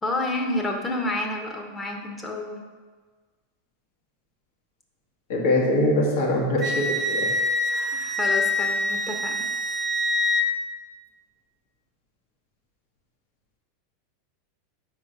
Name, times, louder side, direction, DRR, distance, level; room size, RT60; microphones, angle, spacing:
voice 1, 0.0-2.6 7.9-9.3, left 2 dB, 15° left, 2 dB, 0.9 m, -29 dB
voice 2, 5.3-7.4 7.7-7.9, left 1 dB, 70° left, -2 dB, 1.5 m, -23 dB
Wind instrument woodwind instrument, 6.6-10.5, left 2 dB, 35° right, 0.7 m, -25 dB
4.9 x 3.8 x 5.3 m, 1.5 s
hypercardioid pair, 100°, 0 cm